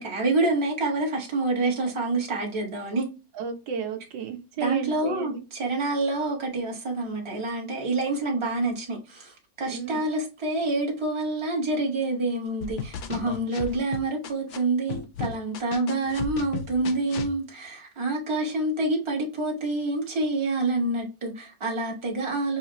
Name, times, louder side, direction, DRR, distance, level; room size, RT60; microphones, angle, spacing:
voice 1, 0.0-3.1 4.6-22.6, right 2 dB, 20° right, 1.1 m, -27 dB
voice 2, 3.3-5.4 9.7-10.0, right 6 dB, 85° right, 1.5 m, -32 dB
sound 1, 12.6-14.6 14.9-17.3, left 7 dB, 85° left, 0.6 m, -34 dB
5.6 x 2.4 x 2.9 m
omnidirectional pair, 2.0 m